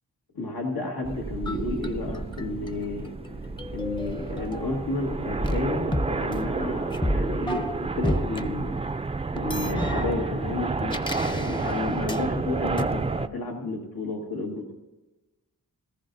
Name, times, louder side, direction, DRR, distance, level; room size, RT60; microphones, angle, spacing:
voice 1, 0.3-3.1 3.7-8.8 9.4-14.7, left 2 dB, 85° left, 0 dB, 1.7 m, -31 dB
sound 1, 1.0-13.3, right 3 dB, 20° right, 0.3 m, -30 dB
sound 2, 1.5-5.0 5.4-8.4 9.4-12.3 12.8-12.9, equal, 15° left, 0.6 m, -32 dB
18.5 x 14.5 x 2.6 m, 1.1 s
wide cardioid pair, 80°, 35 cm